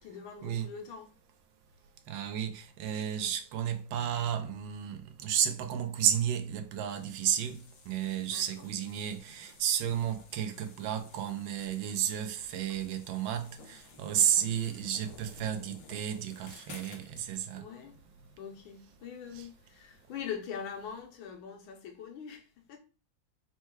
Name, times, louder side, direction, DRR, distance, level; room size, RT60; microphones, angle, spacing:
voice 1, 0.0-1.2 3.1-3.3 8.3-8.7 14.3-14.5 17.5-18.0 18.3-22.8, left 7 dB, 85° left, 1.7 m, -43 dB
voice 2, 2.1-7.6 7.9-17.6 19.3-19.5, right 9 dB, 70° right, 1.3 m, -32 dB
sound 1, 6.9-17.3, left 5 dB, 70° left, 1.4 m, -54 dB
4.4 x 2.2 x 4.5 m
omnidirectional pair, 2.2 m